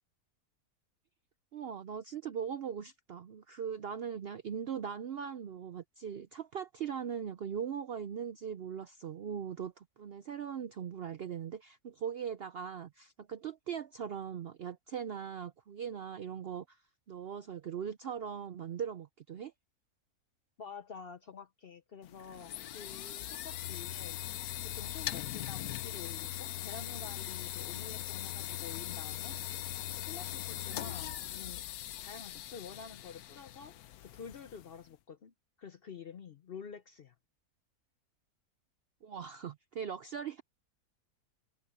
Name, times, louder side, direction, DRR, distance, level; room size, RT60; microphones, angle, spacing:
voice 1, 1.5-16.8 17.1-19.5 39.0-40.4, right 7 dB, 65° right, 0.6 m, -40 dB
voice 2, 20.6-29.7 30.0-31.7 32.0-33.8 34.0-37.1, left 6 dB, 55° left, 0.6 m, -49 dB
sound 1, 22.0-34.8, left 13 dB, 75° left, 1.1 m, -40 dB
omnidirectional pair, 1.6 m